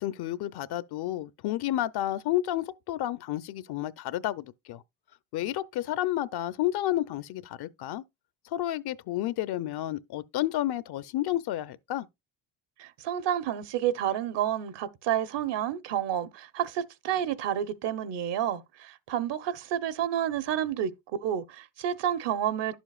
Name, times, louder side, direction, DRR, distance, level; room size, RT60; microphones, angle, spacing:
voice 1, 0.0-4.8 5.3-8.0 8.5-12.1, left 14 dB, 55° left, 0.7 m, -31 dB
voice 2, 12.8-20.9 21.2-22.8, right 10 dB, 65° right, 1.0 m, -30 dB
10.5 x 7.1 x 2.4 m
supercardioid pair, 90°, 46 cm